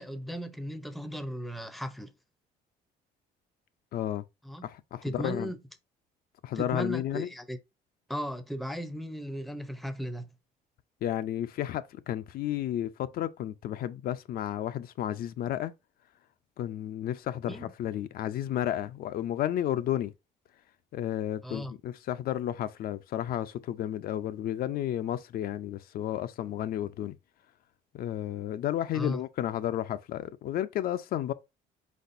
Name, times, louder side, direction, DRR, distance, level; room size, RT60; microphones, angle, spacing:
voice 1, 0.0-2.1 4.4-4.6 5.0-5.6 6.6-7.6 8.1-10.3 17.5-17.7 21.4-21.7 28.9-29.2, equal, ahead, 0.6 m, -36 dB
voice 2, 3.9-4.2 4.6-5.5 6.4-7.3 11.0-15.7 16.6-20.1 20.9-27.2 27.9-31.3, left 11 dB, 60° left, 0.5 m, -32 dB
4.7 x 4.2 x 2.5 m
cardioid pair, 110°, 17 cm